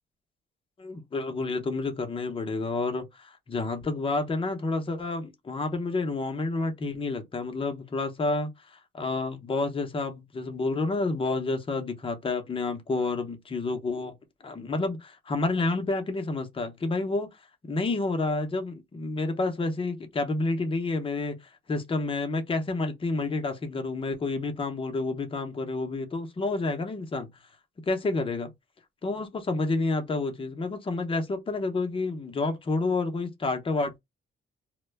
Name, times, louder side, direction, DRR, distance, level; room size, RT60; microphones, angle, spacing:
voice 1, 0.8-14.1 14.4-17.3 17.6-27.3 27.9-28.5 29.0-34.0, left 3 dB, 25° left, 0.7 m, -29 dB
2.1 x 2.1 x 3.3 m
cardioid pair, 90°, 20 cm